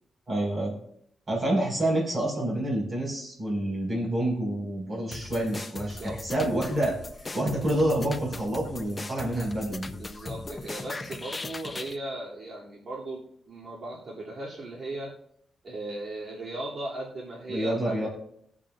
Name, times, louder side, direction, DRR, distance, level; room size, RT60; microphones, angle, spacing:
voice 1, 0.3-0.7 1.3-6.9 7.3-9.9 17.5-18.1, right 1 dB, 40° right, -2 dB, 5.0 m, -28 dB
sound 1, 5.1-12.0, left 3 dB, 25° left, 0.5 m, -39 dB
voice 2, 5.7-6.2 9.9-15.1 15.6-18.1, right 1 dB, 55° right, -6 dB, 2.6 m, -37 dB
21.0 x 7.5 x 2.5 m, 0.70 s
wide cardioid pair, 115°, 0 cm